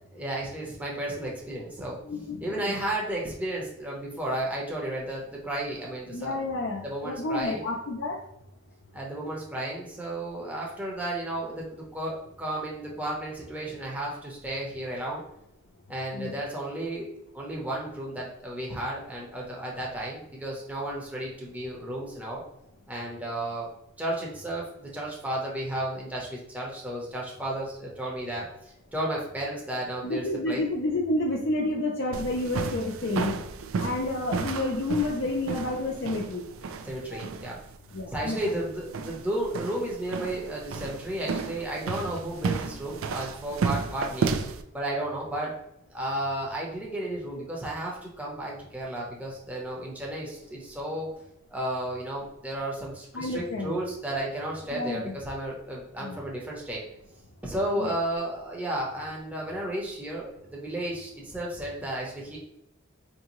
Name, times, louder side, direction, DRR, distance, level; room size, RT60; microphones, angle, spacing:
voice 1, 0.1-2.0 2.4-6.5 6.8-7.7 8.9-15.2 15.9-22.4 22.9-23.7 24.0-30.6 36.8-37.6 38.1-44.4 44.7-45.5 45.9-51.1 51.5-56.8 57.4-62.4, right 1 dB, 5° right, -3 dB, 0.7 m, -33 dB
voice 2, 2.1-2.7 6.1-8.2 16.1-16.4 30.0-33.3 33.8-36.5 37.1-37.2 37.9-38.6 53.1-53.8 54.7-55.2 56.0-56.2 57.8-57.9, left 2 dB, 60° left, -1 dB, 0.5 m, -30 dB
sound 1, 32.1-44.6, right 4 dB, 80° right, 0.4 m, -33 dB
4.6 x 2.6 x 3.0 m, 0.81 s
head